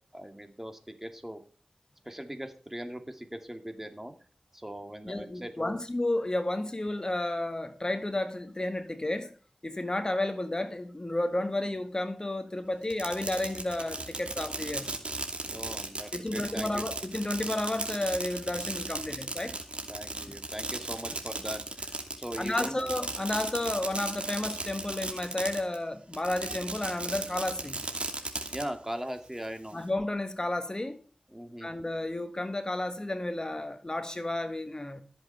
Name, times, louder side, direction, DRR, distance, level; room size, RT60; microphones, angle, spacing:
voice 1, 0.1-1.4 2.0-4.1 4.5-5.8 15.5-16.8 19.9-22.9 25.0-25.2 28.5-29.8 31.3-31.7, equal, 15° right, 2.4 m, -40 dB
voice 2, 5.0-9.3 9.6-14.9 16.1-19.6 22.4-27.8 29.7-31.0 31.6-35.0, left 1 dB, 35° left, 1.5 m, -32 dB
Fireworks, 12.8-25.8 26.1-28.6, right 2 dB, 60° right, 2.6 m, -36 dB
14.5 x 7.5 x 5.7 m
cardioid pair, 40°, 2 cm